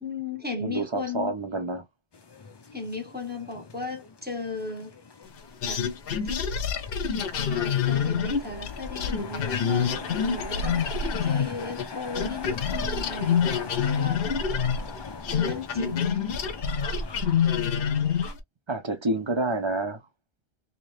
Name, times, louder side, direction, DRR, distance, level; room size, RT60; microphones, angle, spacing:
voice 1, 0.0-1.4 2.7-4.9 5.7-5.8 6.2-6.5 7.1-10.9 11.2-14.3 15.3-16.3, left 4 dB, 10° right, 0.8 m, -36 dB
voice 2, 0.6-1.8 18.7-20.0, right 2 dB, 35° right, 0.5 m, -28 dB
sound 1, 2.1-18.3, left 4 dB, 40° left, 0.3 m, -41 dB
sound 2, 5.6-11.9 12.2-18.4, left 7 dB, 65° left, 0.8 m, -27 dB
2.8 x 2.7 x 3.1 m
omnidirectional pair, 1.1 m